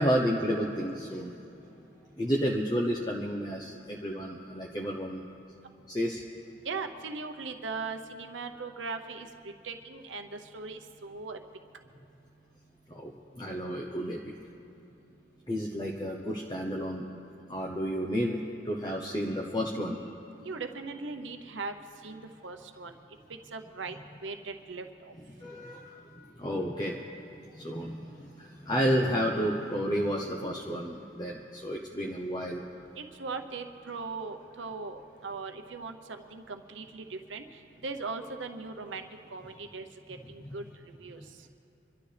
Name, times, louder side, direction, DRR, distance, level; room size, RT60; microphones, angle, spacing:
voice 1, 0.0-1.3 2.2-5.3 5.9-6.2 8.5-8.6 12.9-13.1 13.4-14.3 15.5-17.0 17.5-18.4 18.6-20.1 25.4-26.1 26.4-27.0 27.5-32.6 40.2-40.5, equal, 20° left, -1 dB, 0.8 m, -31 dB
voice 2, 6.6-9.3 9.6-11.4 20.4-21.7 22.0-22.9 23.5-23.9 24.2-24.8 33.0-37.4 37.8-39.1 39.3-39.8 40.3-40.6 41.0-41.2, right 4 dB, 85° right, 6 dB, 0.8 m, -39 dB
26.0 x 12.5 x 3.4 m, 2.9 s
head